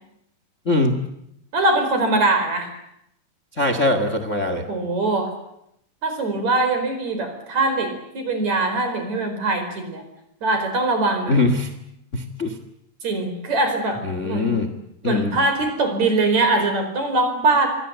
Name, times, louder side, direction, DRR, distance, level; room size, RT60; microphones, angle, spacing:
voice 1, 0.6-1.0 3.6-4.6 11.3-11.7 12.1-12.6 14.0-14.7 15.0-15.3, left 2 dB, 75° left, 9 dB, 0.6 m, -21 dB
voice 2, 1.5-2.7 4.7-5.3 6.0-10.0 10.4-11.4 13.0-14.6 15.0-17.7, right 2 dB, 40° right, 7 dB, 5.7 m, -22 dB
26.5 x 23.5 x 8.2 m, 0.79 s
omnidirectional pair, 4.9 m